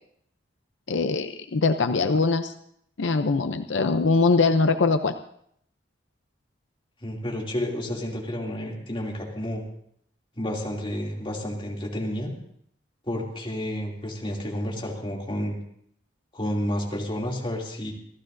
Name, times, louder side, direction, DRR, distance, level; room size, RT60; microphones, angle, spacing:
voice 1, 0.9-2.5 3.0-5.1, left 3 dB, 80° left, 9 dB, 0.6 m, -22 dB
voice 2, 7.0-9.6 10.3-12.3 13.0-15.6 16.3-17.9, equal, 30° left, -2 dB, 2.7 m, -30 dB
27.5 x 14.0 x 2.7 m, 0.68 s
head